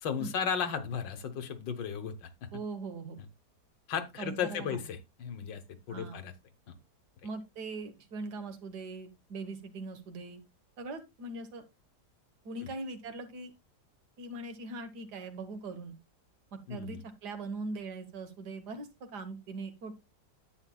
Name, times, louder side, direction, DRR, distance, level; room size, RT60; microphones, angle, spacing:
voice 1, 0.0-2.3 3.9-5.6 5.9-6.3 12.6-12.7 16.7-17.0, left 7 dB, 85° left, 1.7 m, -35 dB
voice 2, 2.5-3.2 4.2-4.8 5.9-6.2 7.2-10.4 10.8-11.6 12.5-13.5 14.2-16.0 16.5-19.9, right 3 dB, 65° right, 1.7 m, -41 dB
10.5 x 8.3 x 2.3 m
omnidirectional pair, 1.9 m